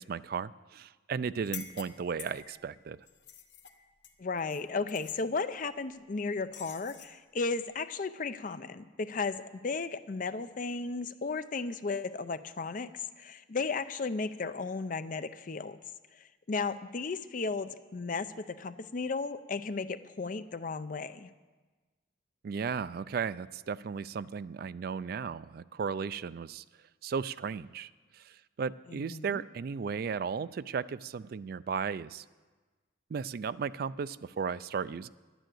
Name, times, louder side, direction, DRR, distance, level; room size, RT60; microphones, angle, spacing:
voice 1, 0.0-3.0 22.4-26.6 27.0-32.2 33.1-35.1, right 6 dB, 55° right, 16 dB, 0.3 m, -35 dB
sound 1, 1.4-2.6 3.1-4.6 4.9-5.2 6.5-7.2, left 9 dB, 75° left, 1.0 m, -47 dB
voice 2, 4.2-15.8 16.1-21.3 28.9-29.4, left 4 dB, 45° left, 12 dB, 0.5 m, -35 dB
11.5 x 9.1 x 7.8 m, 1.3 s
head